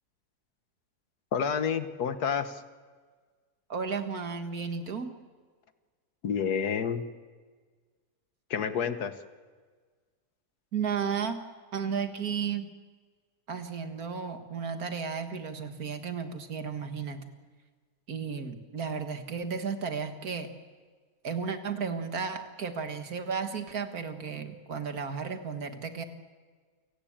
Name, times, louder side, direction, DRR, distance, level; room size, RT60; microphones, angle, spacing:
voice 1, 1.3-2.5 6.2-7.0 8.5-9.1, left 7 dB, 90° left, 10 dB, 1.8 m, -29 dB
voice 2, 3.7-5.1 10.7-11.4 11.7-12.7 13.5-17.2 18.1-20.5 21.2-26.0, right 6 dB, 70° right, 7 dB, 2.1 m, -33 dB
28.5 x 17.5 x 8.8 m, 1.5 s
omnidirectional pair, 1.6 m